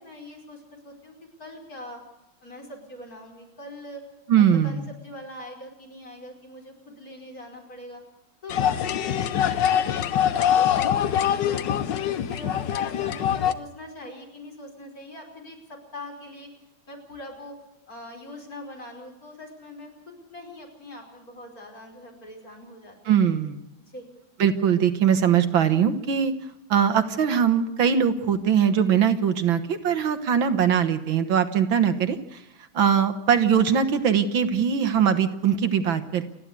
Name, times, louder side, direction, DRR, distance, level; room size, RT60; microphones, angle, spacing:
voice 1, 0.0-2.0 2.4-4.0 4.4-8.0 8.4-16.5 16.9-17.6 17.9-19.9 20.2-23.3 23.9-24.1, left 1 dB, 45° left, 1 dB, 5.6 m, -42 dB
voice 2, 4.3-4.9 23.1-23.6 24.4-26.3 26.7-32.4 32.7-36.2, right 8 dB, 75° right, 9 dB, 2.1 m, -21 dB
sound 1, 8.5-13.5, left 9 dB, 65° left, 1.5 m, -23 dB
29.0 x 11.0 x 8.3 m, 0.89 s
omnidirectional pair, 2.2 m